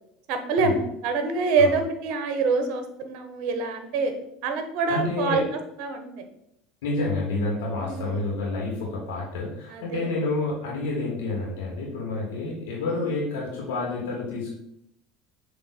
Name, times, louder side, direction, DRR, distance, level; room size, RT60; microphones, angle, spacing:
voice 1, 0.3-4.1 4.4-5.4 5.8-6.2 7.8-8.1 9.7-10.1 12.9-13.0, right 4 dB, 65° right, 7 dB, 1.0 m, -25 dB
voice 2, 4.9-5.4 6.8-14.5, left 2 dB, 85° left, -3 dB, 2.0 m, -29 dB
7.2 x 3.1 x 4.2 m, 0.80 s
supercardioid pair, 90°, 0 cm